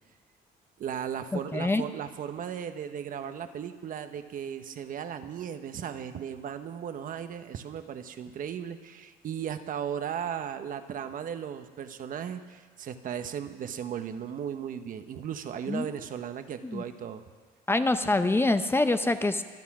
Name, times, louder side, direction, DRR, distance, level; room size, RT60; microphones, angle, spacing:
voice 1, 0.8-17.2, right 8 dB, 55° right, 9 dB, 1.1 m, -36 dB
voice 2, 1.5-1.8 15.7-15.9 16.6-16.8 17.7-19.4, left 2 dB, 15° left, 9 dB, 0.7 m, -25 dB
24.0 x 8.4 x 6.1 m, 1.5 s
cardioid pair, 110°, 17 cm